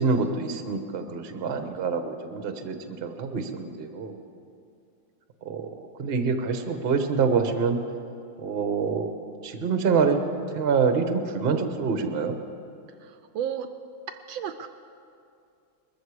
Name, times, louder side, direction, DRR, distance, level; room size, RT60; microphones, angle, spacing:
voice 1, 0.0-4.2 5.4-5.7 6.0-7.8 8.4-9.2 9.4-10.2 10.5-12.4, right 5 dB, 40° right, 6 dB, 0.9 m, -26 dB
voice 2, 13.0-13.7 14.3-14.7, right 9 dB, 75° right, 8 dB, 1.2 m, -33 dB
20.5 x 14.5 x 4.8 m, 2.5 s
omnidirectional pair, 2.3 m